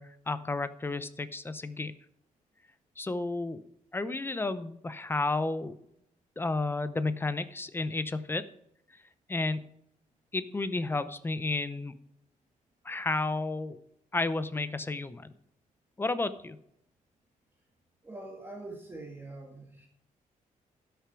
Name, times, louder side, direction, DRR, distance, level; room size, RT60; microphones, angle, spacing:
voice 1, 0.0-1.9 3.0-3.6 3.9-5.8 6.4-8.4 9.3-9.7 10.3-11.9 12.8-13.8 14.1-15.3 16.0-16.6, left 3 dB, 15° left, 13 dB, 0.6 m, -32 dB
voice 2, 18.0-19.9, right 2 dB, 15° right, 1 dB, 1.6 m, -44 dB
12.5 x 6.9 x 4.6 m, 0.74 s
wide cardioid pair, 155°, 14 cm